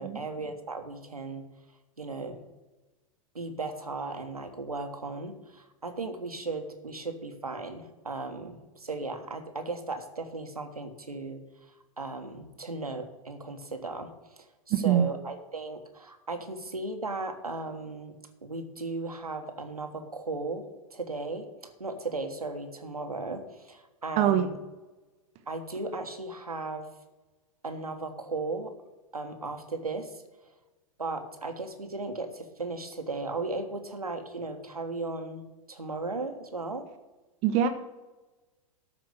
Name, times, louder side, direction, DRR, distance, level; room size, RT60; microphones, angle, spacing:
voice 1, 0.0-1.4 2.0-2.4 3.3-11.4 12.0-18.1 18.4-24.5 25.5-26.9 27.6-28.7 29.1-30.1 31.0-36.9, right 3 dB, 90° right, 6 dB, 1.4 m, -36 dB
voice 2, 14.7-15.1 24.2-24.5 37.4-37.7, right 10 dB, 40° right, 9 dB, 1.0 m, -23 dB
13.0 x 5.1 x 6.4 m, 1.1 s
figure-of-eight pair, 100°, 19 cm